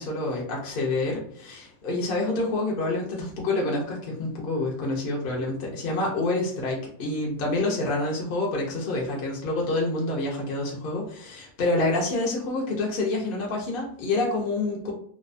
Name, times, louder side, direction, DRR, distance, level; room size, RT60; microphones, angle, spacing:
voice 1, 0.0-14.9, left 2 dB, 65° left, -3 dB, 0.5 m, -27 dB
2.7 x 2.1 x 2.4 m, 0.62 s
omnidirectional pair, 1.6 m